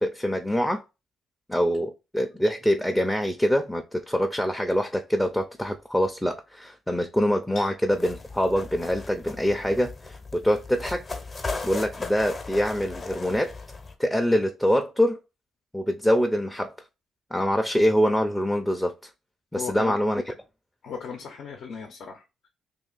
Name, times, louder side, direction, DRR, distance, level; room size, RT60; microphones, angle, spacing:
voice 1, 0.0-0.8 1.5-11.0 11.6-13.5 14.0-15.2 15.7-16.7 17.3-18.9 19.5-20.3, equal, 5° left, 0.4 m, -24 dB
sound 1, 7.9-13.9, left 3 dB, 35° left, 0.8 m, -37 dB
voice 2, 19.5-20.0 20.8-22.5, left 5 dB, 70° left, 0.7 m, -37 dB
2.8 x 2.7 x 3.9 m
cardioid pair, 90°, 0 cm